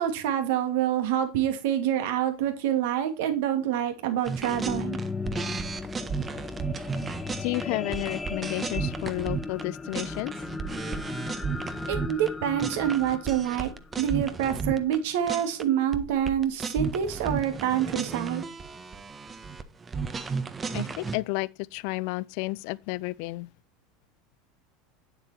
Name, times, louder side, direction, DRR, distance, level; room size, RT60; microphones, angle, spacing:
voice 1, 0.0-5.0 11.9-13.7 14.0-18.4, right 10 dB, 65° right, 2.4 m, -26 dB
sound 1, 4.1-14.7 15.3-15.4, left 4 dB, 15° left, 1.1 m, -37 dB
sound 2, 4.3-9.6 9.9-12.3 12.6-15.0 15.3-15.6 15.9-21.2, right 5 dB, 25° right, 1.4 m, -34 dB
voice 2, 7.4-10.3 20.7-23.5, left 21 dB, 60° left, 0.5 m, -31 dB
9.8 x 8.2 x 4.3 m
hypercardioid pair, 80°, 0 cm